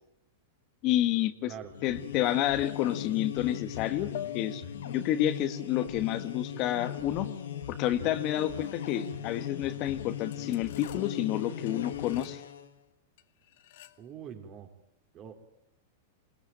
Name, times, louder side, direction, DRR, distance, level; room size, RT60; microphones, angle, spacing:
voice 1, 0.8-1.5 1.8-7.3 7.7-12.4, left 12 dB, 45° left, 10 dB, 1.6 m, -29 dB
sound 1, 1.6-12.7, left 10 dB, 80° left, 2.2 m, -38 dB
sound 2, 2.6-3.3 4.1-5.0 6.8-7.1 8.6-9.1 9.5-9.8 10.3-11.3 11.7-12.4 13.2-14.1, left 13 dB, 65° left, 1.4 m, -47 dB
voice 2, 14.0-14.7 15.1-15.4, right 8 dB, 35° right, 4 dB, 4.3 m, -44 dB
22.0 x 19.5 x 9.0 m, 0.79 s
hypercardioid pair, 125°, 0 cm